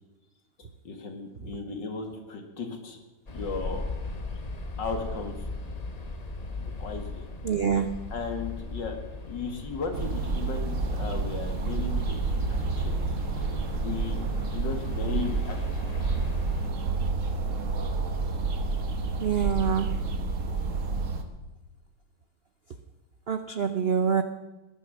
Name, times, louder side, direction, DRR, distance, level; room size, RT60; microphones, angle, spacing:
voice 1, 0.8-3.0 3.3-3.9 4.8-5.4 6.6-7.3 7.7-9.0 9.3-13.6 13.8-15.6, left 4 dB, 65° left, 4 dB, 2.7 m, -36 dB
sound 1, 3.3-16.7, left 3 dB, 25° left, 0.9 m, -38 dB
voice 2, 7.4-8.0 19.2-19.9 23.3-24.2, right 7 dB, 85° right, 9 dB, 0.5 m, -25 dB
sound 2, 9.9-21.2, right 4 dB, 45° right, 1.5 m, -29 dB
19.5 x 11.5 x 6.4 m, 1.2 s
omnidirectional pair, 2.1 m